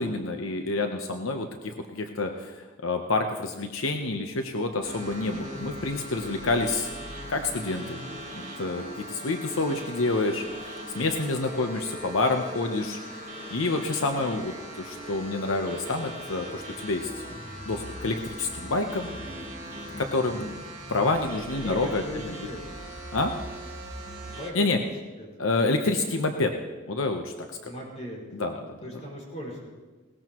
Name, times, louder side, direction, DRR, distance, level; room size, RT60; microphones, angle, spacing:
voice 1, 0.0-6.9 7.3-8.0 8.4-13.0 13.5-17.1 17.7-19.1 20.0-20.6 20.9-22.3 23.1-23.3 24.5-24.8 25.4-26.5 26.9-27.7 28.3-28.8, left 3 dB, 85° left, 5 dB, 0.9 m, -28 dB
sound 1, 4.8-24.3, equal, 20° left, 1.8 m, -43 dB
sound 2, 4.8-24.5, right 1 dB, 40° right, 2.6 m, -42 dB
voice 2, 20.1-20.5 21.6-22.6 24.3-24.9 25.2-25.3 27.6-28.2 28.8-29.7, equal, 35° left, -3 dB, 5.4 m, -39 dB
20.0 x 18.5 x 3.1 m, 1.3 s
head